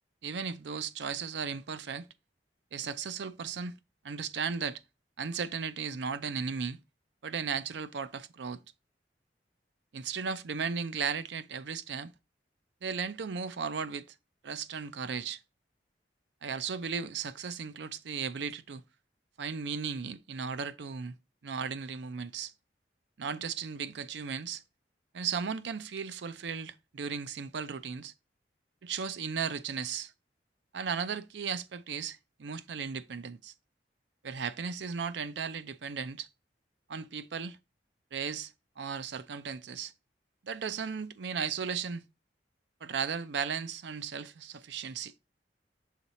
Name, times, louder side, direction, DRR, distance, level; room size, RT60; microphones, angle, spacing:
voice 1, 0.2-2.1 2.7-3.8 4.0-4.8 5.2-6.8 7.2-8.6 9.9-12.1 12.8-14.1 14.4-15.4 16.4-18.8 19.4-21.2 21.4-22.5 23.2-24.6 25.1-28.1 28.8-30.1 30.7-33.5 34.2-36.3 36.9-37.6 38.1-39.9 40.4-42.0 42.8-45.1, right 6 dB, 80° right, 0.5 m, -36 dB
5.9 x 3.9 x 4.2 m
head